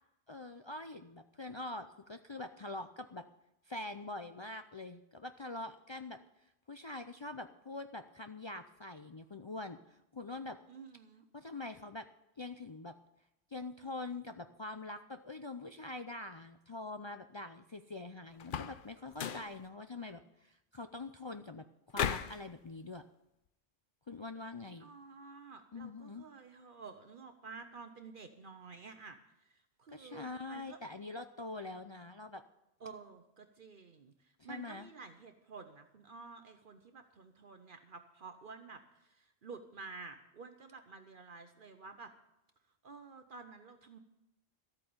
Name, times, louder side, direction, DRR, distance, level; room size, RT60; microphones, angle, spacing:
voice 1, 0.3-3.3 3.7-6.2 6.7-9.8 10.1-10.6 11.3-12.1 12.4-12.9 13.5-21.7 21.9-23.0 24.1-24.9 25.7-26.2 29.9-32.4 34.4-34.9, left 2 dB, 40° left, 7 dB, 0.4 m, -44 dB
voice 2, 10.7-11.3 24.7-30.8 32.8-42.1 42.8-44.0, right 4 dB, 55° right, 7 dB, 1.0 m, -51 dB
sound 1, 18.4-18.8 19.1-19.5 21.9-22.4, left 8 dB, 60° left, 0.8 m, -35 dB
13.0 x 8.9 x 7.0 m, 0.87 s
omnidirectional pair, 1.1 m